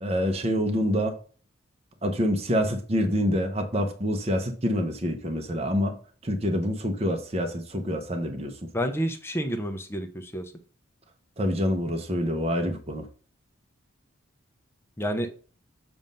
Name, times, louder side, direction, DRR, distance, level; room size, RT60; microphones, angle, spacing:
voice 1, 0.0-1.1 2.0-6.0 6.2-8.5 11.4-13.0, equal, 30° right, 0.7 m, -26 dB
voice 2, 8.7-10.4 15.0-15.3, equal, 10° left, 0.6 m, -29 dB
7.3 x 2.6 x 5.2 m
head